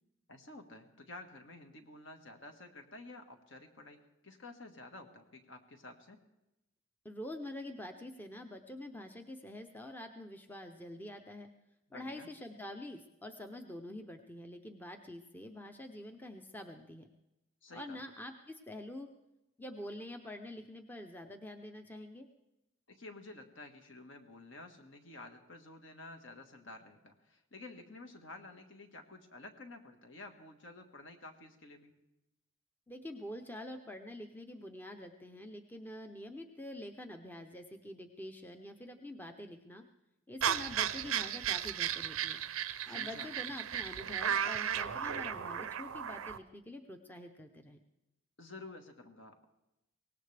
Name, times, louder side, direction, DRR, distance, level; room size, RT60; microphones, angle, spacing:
voice 1, 0.3-6.2 11.9-12.3 17.6-18.0 22.9-31.9 42.9-43.3 48.4-49.4, left 2 dB, 60° left, 5 dB, 1.5 m, -51 dB
voice 2, 7.0-11.5 11.9-17.1 17.7-19.1 19.6-22.3 32.9-39.8 40.3-42.4 42.9-47.8, left 1 dB, 10° left, 5 dB, 0.6 m, -46 dB
sound 1, 40.4-46.4, right 9 dB, 80° right, 0.6 m, -35 dB
23.0 x 18.0 x 3.4 m, 0.93 s
head